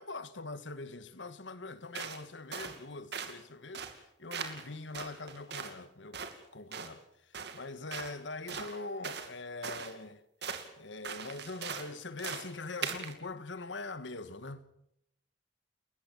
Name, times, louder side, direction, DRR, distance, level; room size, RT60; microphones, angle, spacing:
voice 1, 0.0-6.2 6.5-10.2 10.8-14.7, left 3 dB, 85° left, 1.5 m, -43 dB
sound 1, 1.9-2.2 2.5-2.8 3.1-3.4 3.7-4.0 4.3-4.7 4.9-5.8 6.1-6.3 6.7-6.9 7.3-7.6 7.9-8.1 8.5-9.3 9.6-9.9 10.4-10.7 11.0-11.9 12.2-12.5 12.8-13.1, right 6 dB, 65° right, 2.6 m, -40 dB
30.0 x 14.0 x 7.5 m
head